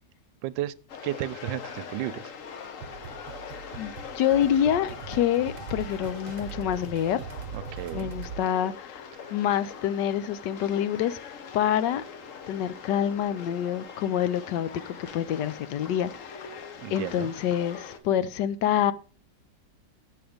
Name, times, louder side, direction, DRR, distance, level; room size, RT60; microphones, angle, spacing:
voice 1, 0.4-0.7 1.0-2.3 7.5-8.1 9.2-9.3 16.8-17.3, right 14 dB, 90° right, 1.3 m, -33 dB
sound 1, 0.9-18.0, left 6 dB, 55° left, 1.1 m, -42 dB
sound 2, 2.8-8.4, right 7 dB, 70° right, 1.4 m, -41 dB
voice 2, 4.2-7.2 7.9-11.2 11.5-12.0 12.5-16.6 16.9-18.9, left 10 dB, 75° left, 1.2 m, -27 dB
7.5 x 6.9 x 5.0 m
omnidirectional pair, 1.9 m